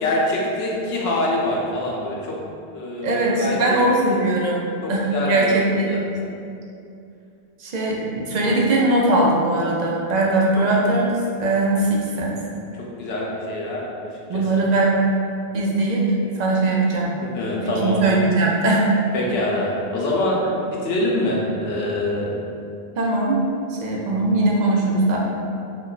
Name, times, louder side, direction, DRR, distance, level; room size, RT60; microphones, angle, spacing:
voice 1, 0.0-2.4 2.7-3.8 4.8-5.5 5.9-6.0 10.6-10.9 12.8-14.6 17.2-18.0 19.1-22.3, left 1 dB, 80° left, -3 dB, 0.9 m, -25 dB
voice 2, 3.0-4.6 4.9-6.2 7.6-12.3 14.3-15.1 15.5-16.1 16.4-17.1 17.6-18.9 23.0-23.4 23.7-25.2, right 2 dB, 55° right, -3 dB, 0.5 m, -20 dB
2.5 x 2.2 x 3.8 m, 2.5 s
omnidirectional pair, 1.0 m